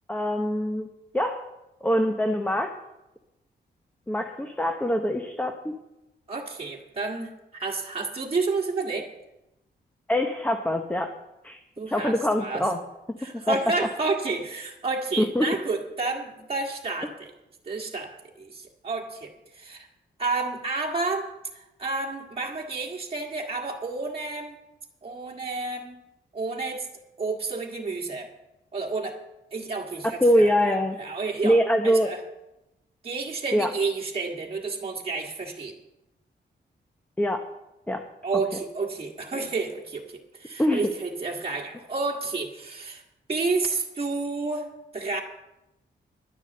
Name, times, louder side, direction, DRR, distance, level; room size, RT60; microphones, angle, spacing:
voice 1, 0.1-0.9 1.1-1.5 1.8-2.7 4.1-5.7 10.1-11.1 11.4-11.6 11.9-12.8 13.5-13.6 15.2-15.5 30.2-31.0 31.4-32.1 33.5-33.7 37.2-37.4 37.9-38.1 40.6-40.9, equal, 10° left, 4 dB, 0.9 m, -23 dB
voice 2, 6.3-7.3 7.6-9.1 11.8-12.7 13.2-17.3 17.6-18.1 18.4-19.9 20.2-21.3 21.5-24.5 25.0-26.0 26.3-26.9 27.2-28.3 28.7-29.2 29.5-31.6 31.8-32.2 33.0-35.7 38.2-40.0 40.3-43.0 43.3-44.7 44.9-45.2, right 3 dB, 30° right, -1 dB, 1.7 m, -30 dB
11.0 x 9.8 x 7.8 m, 0.93 s
wide cardioid pair, 140°, 18 cm